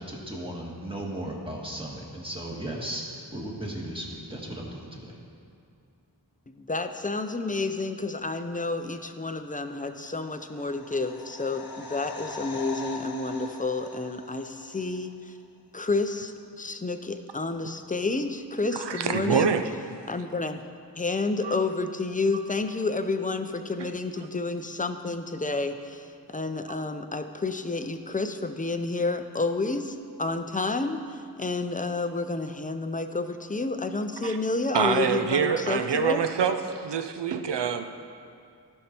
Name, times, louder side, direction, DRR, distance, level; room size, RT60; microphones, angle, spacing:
voice 1, 0.0-5.2, right 1 dB, 15° right, -3 dB, 1.7 m, -36 dB
voice 2, 6.5-15.3 15.7-19.5 20.1-20.6 21.0-36.2, left 3 dB, 20° left, 8 dB, 0.5 m, -30 dB
sound 1, 10.1-15.0 15.2-15.3, left 3 dB, 60° left, 0.9 m, -41 dB
voice 3, 18.7-19.7 21.4-21.5 23.8-23.9 34.2-34.4 34.7-37.8, right 7 dB, 85° right, 8 dB, 0.6 m, -26 dB
14.5 x 5.6 x 4.4 m, 2.4 s
wide cardioid pair, 70°, 41 cm